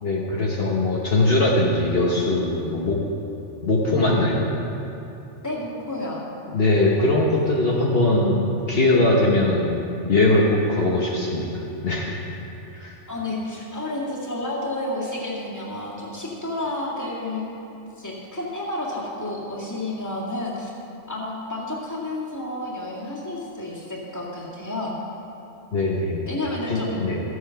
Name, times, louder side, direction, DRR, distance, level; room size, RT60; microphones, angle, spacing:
voice 1, 0.0-3.0 3.6-4.4 6.5-9.8 10.1-12.2 12.7-12.9 25.7-26.2 26.7-27.2, left 2 dB, 55° left, -3 dB, 1.3 m, -21 dB
voice 2, 5.4-6.2 13.1-17.5 18.0-20.7 21.1-24.9 26.3-27.0, left 1 dB, 15° left, -5 dB, 2.0 m, -30 dB
13.0 x 8.1 x 5.7 m, 2.9 s
omnidirectional pair, 1.2 m